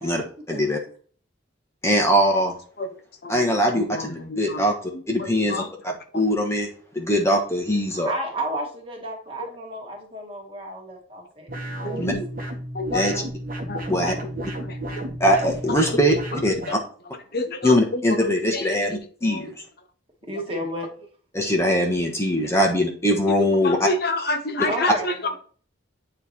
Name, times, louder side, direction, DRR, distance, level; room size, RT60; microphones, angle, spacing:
voice 1, 0.0-0.8 1.8-2.5 3.3-4.7 5.1-6.7 6.9-8.1 12.0-12.1 12.9-13.2 13.9-14.1 15.2-16.1 16.4-16.8 17.6-19.5 21.3-23.9 24.9-25.0, equal, 15° left, 2 dB, 1.2 m, -22 dB
voice 2, 3.2-4.6 4.9-5.7 9.4-9.5 11.8-12.3 12.7-13.2 13.7-14.3 14.6-15.1 16.1-16.8 17.3-19.5 20.3-20.4 22.4-22.5 23.3-23.4 23.6-25.4, left 2 dB, 50° left, 7 dB, 0.7 m, -30 dB
voice 3, 7.9-12.1 20.3-20.9 24.7-25.1, right 1 dB, 30° right, -1 dB, 1.9 m, -32 dB
sound 1, 11.5-16.8, right 1 dB, 45° right, 1.3 m, -32 dB
9.2 x 3.3 x 4.3 m, 0.43 s
head